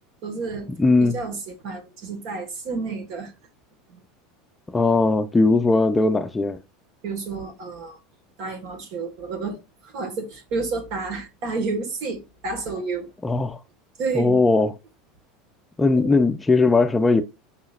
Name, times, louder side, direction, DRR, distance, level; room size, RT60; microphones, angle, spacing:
voice 1, 0.2-3.3 3.9-4.0 7.0-8.0 8.4-13.1 14.0-14.4 16.0-16.1, right 4 dB, 60° right, 1.5 m, -30 dB
voice 2, 0.8-1.1 4.7-6.6 13.2-13.6 14.1-14.7 15.8-17.2, left 3 dB, 10° left, 0.4 m, -19 dB
5.6 x 3.9 x 2.4 m
supercardioid pair, 115°, 0 cm